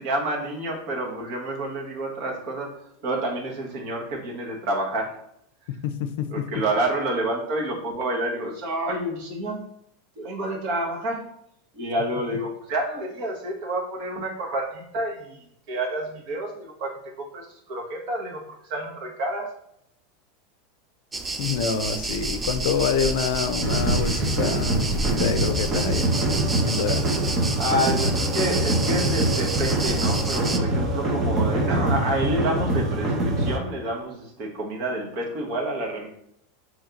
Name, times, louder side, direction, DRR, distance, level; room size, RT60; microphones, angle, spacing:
voice 1, 0.0-2.7 3.0-5.2 6.3-9.6 10.2-11.3 11.7-19.5 27.6-36.1, right 1 dB, 55° right, 0 dB, 1.2 m, -29 dB
voice 2, 5.8-6.6 21.4-26.1 26.6-27.2, left 7 dB, 70° left, 10 dB, 0.4 m, -27 dB
sound 1, 21.1-30.6, right 2 dB, 15° right, 0.4 m, -30 dB
sound 2, 23.6-33.6, right 1 dB, 35° right, 0.9 m, -24 dB
3.1 x 2.8 x 3.7 m, 0.74 s
hypercardioid pair, 105°, 0 cm